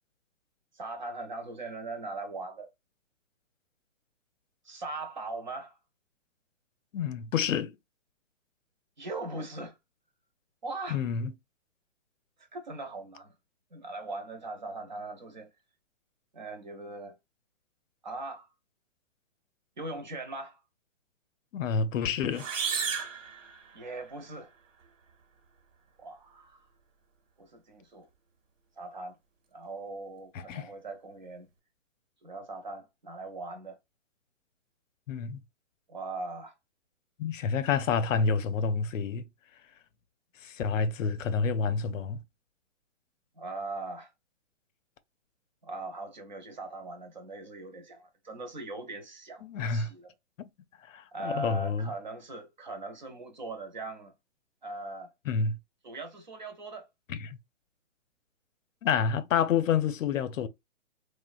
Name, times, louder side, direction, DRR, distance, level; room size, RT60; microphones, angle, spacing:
voice 1, 0.7-2.7 4.6-5.8 9.0-9.7 10.6-11.0 12.5-13.3 13.7-15.5 16.3-17.1 18.0-18.5 19.8-20.6 23.7-24.5 26.0-26.6 27.4-28.1 28.8-29.2 29.5-31.5 32.2-33.8 35.9-36.5 38.2-38.3 43.4-44.1 45.6-50.1 51.1-54.1 54.6-55.1 55.8-56.9, right 2 dB, 40° right, 0.5 m, -40 dB
voice 2, 6.9-7.7 10.9-11.3 21.5-22.5 30.3-30.7 35.1-35.4 37.2-39.2 40.4-42.2 49.4-49.9 50.4-50.5 50.9-51.9 55.3-55.6 57.1-57.4 58.8-60.5, left 6 dB, 85° left, 0.5 m, -28 dB
sound 1, 22.3-24.2, right 6 dB, 85° right, 0.8 m, -34 dB
2.9 x 2.0 x 2.3 m
hypercardioid pair, 175°, 37 cm